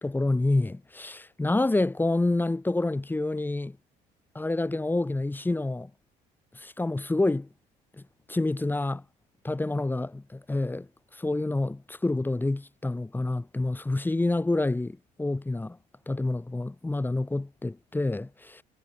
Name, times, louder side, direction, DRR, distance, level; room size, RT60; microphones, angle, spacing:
voice 1, 0.0-3.8 4.3-5.9 6.5-7.5 8.3-9.0 9.4-10.9 11.1-15.8 16.1-18.6, left 2 dB, 10° left, 0.8 m, -28 dB
supercardioid pair, 80°, 18 cm